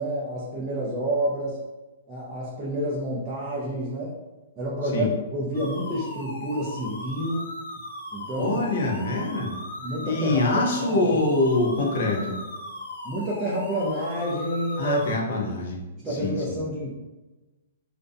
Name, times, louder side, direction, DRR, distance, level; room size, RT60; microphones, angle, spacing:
voice 1, 0.0-1.6 2.1-4.1 4.6-7.5 8.1-8.6 9.8-11.0 13.0-15.1 15.4-15.5 15.9-16.9, right 1 dB, 10° right, -8 dB, 0.4 m, -29 dB
sound 1, 5.5-15.1, left 1 dB, 90° left, 0.8 m, -38 dB
voice 2, 8.4-9.6 10.0-12.4 14.8-15.8 16.1-16.6, left 2 dB, 50° left, 0 dB, 0.5 m, -24 dB
2.5 x 2.1 x 2.5 m, 1.1 s
hypercardioid pair, 170°, 0 cm